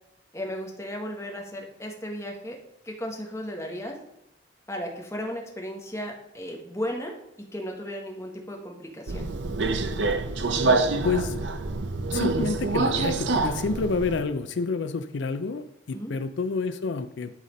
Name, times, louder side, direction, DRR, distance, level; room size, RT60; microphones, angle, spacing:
voice 1, 0.3-2.6 2.8-4.0 4.7-7.1 7.5-9.2 15.9-16.1, equal, 15° left, 1 dB, 1.3 m, -35 dB
Subway metro underground, 9.1-14.2, right 3 dB, 75° right, 0.7 m, -26 dB
voice 2, 11.0-11.4 12.1-17.4, left 4 dB, 75° left, 11 dB, 0.5 m, -28 dB
11.5 x 4.2 x 5.2 m, 0.82 s
head